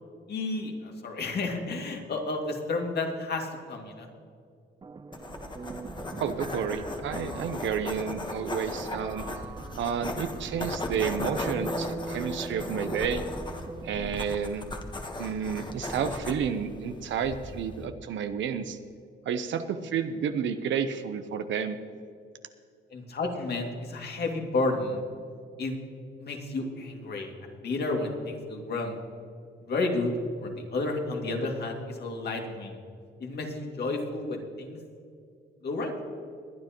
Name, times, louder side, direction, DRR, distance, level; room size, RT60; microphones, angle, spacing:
voice 1, 0.3-4.1 22.9-25.0 25.6-25.8 26.2-27.3 27.6-29.0 29.7-30.1 30.4-32.8 33.2-34.8 35.6-35.9, left 3 dB, 55° left, 2 dB, 2.2 m, -31 dB
sound 1, 4.8-14.3, right 3 dB, 20° right, 0.5 m, -41 dB
sound 2, 5.1-17.9, left 2 dB, 20° left, 1.2 m, -37 dB
voice 2, 6.2-9.2 9.8-13.2 13.8-14.7 15.2-18.8 19.3-21.8, right 7 dB, 70° right, 9 dB, 0.7 m, -31 dB
22.0 x 9.5 x 3.0 m, 2.4 s
cardioid pair, 90°, 20 cm